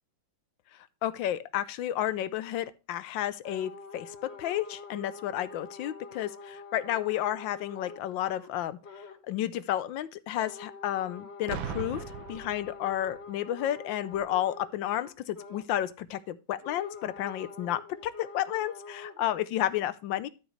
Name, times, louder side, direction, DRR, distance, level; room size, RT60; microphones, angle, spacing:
voice 1, 1.0-8.8 9.3-20.3, left 12 dB, 70° left, 1.3 m, -32 dB
sound 1, 3.4-8.5 8.8-9.2 10.4-15.7 16.6-19.3, left 4 dB, 30° left, 1.9 m, -46 dB
Boom, 11.5-13.2 14.1-14.4, right 8 dB, 75° right, 1.7 m, -39 dB
13.0 x 6.2 x 3.2 m
omnidirectional pair, 2.2 m